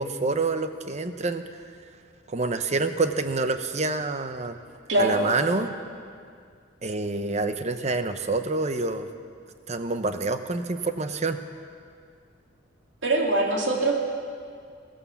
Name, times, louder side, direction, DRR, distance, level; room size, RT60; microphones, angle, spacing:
voice 1, 0.0-1.4 2.3-4.6 5.0-5.7 6.8-9.1 9.7-11.4, right 3 dB, 35° right, 9 dB, 0.8 m, -27 dB
voice 2, 4.9-5.2 13.0-14.0, right 2 dB, 80° right, 1 dB, 2.3 m, -22 dB
15.5 x 13.0 x 7.0 m, 2.2 s
head